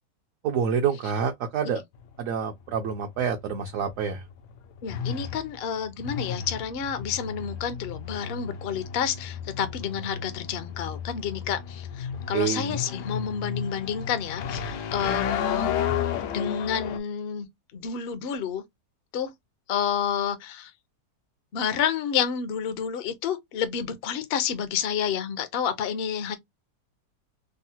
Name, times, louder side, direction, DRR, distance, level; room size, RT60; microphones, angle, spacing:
voice 1, 0.4-1.8 2.2-4.2 12.3-12.8, right 7 dB, 65° right, 0.8 m, -27 dB
sound 1, 1.9-17.0, left 8 dB, 85° left, 1.2 m, -33 dB
voice 2, 4.8-15.7 16.3-17.5 17.7-18.6 19.1-19.3 19.7-20.7 21.5-26.4, left 8 dB, 65° left, 0.6 m, -29 dB
3.6 x 2.0 x 2.7 m
omnidirectional pair, 1.8 m